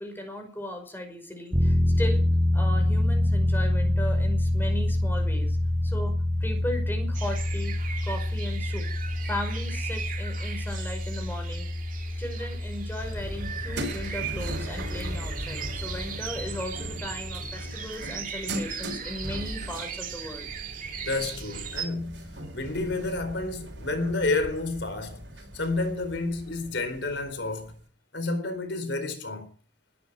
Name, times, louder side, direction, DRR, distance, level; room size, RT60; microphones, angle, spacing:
voice 1, 0.0-2.3 2.5-5.6 5.8-6.1 6.4-7.8 8.1-8.9 9.3-11.7 12.2-20.5, left 1 dB, 10° left, 5.4 m, -37 dB
sound 1, 1.5-17.9, left 1 dB, 15° right, 2.0 m, -27 dB
sound 2, 7.1-21.9, right 7 dB, 45° right, 2.4 m, -38 dB
sound 3, 13.0-27.8, right 1 dB, 75° right, 5.3 m, -39 dB
voice 2, 21.0-25.2 25.5-27.8 28.1-29.5, left 2 dB, 70° left, 4.4 m, -30 dB
20.5 x 12.5 x 4.9 m
head